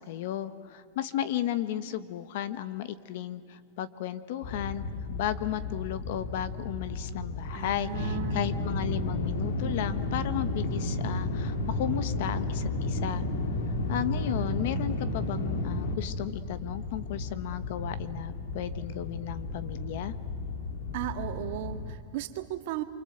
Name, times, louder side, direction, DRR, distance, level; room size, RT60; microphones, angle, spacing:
voice 1, 0.0-13.3 13.9-20.1, left 11 dB, 60° left, 13 dB, 1.2 m, -34 dB
sound 1, 4.4-22.0, left 2 dB, 80° left, 2.6 m, -33 dB
voice 2, 7.5-8.4 20.9-22.8, right 12 dB, 55° right, 7 dB, 1.8 m, -36 dB
28.5 x 25.0 x 8.0 m, 2.3 s
supercardioid pair, 155°, 0 cm